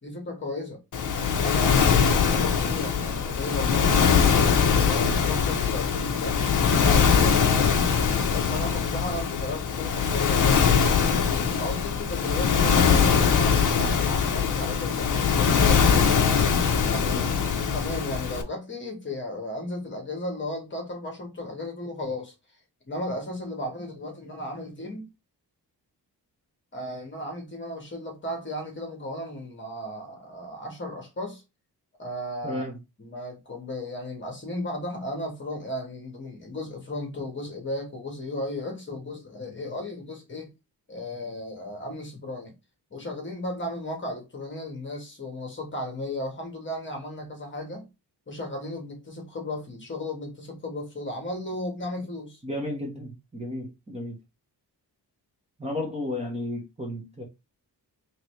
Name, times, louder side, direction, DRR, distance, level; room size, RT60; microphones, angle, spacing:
voice 1, 0.0-0.8 1.4-7.8 8.3-16.1 16.8-17.2 17.5-22.3 22.9-25.1 26.7-31.4 32.0-32.7 33.0-40.5 40.9-42.5 42.9-47.8 48.3-52.4, left 1 dB, 30° left, 1.4 m, -35 dB
Waves surf, 0.9-18.4, left 6 dB, 50° left, 0.7 m, -22 dB
voice 2, 17.0-17.3 32.4-32.8 52.4-54.2 55.6-57.2, left 1 dB, 15° right, 1.2 m, -33 dB
4.1 x 3.2 x 3.1 m
wide cardioid pair, 175°, 41 cm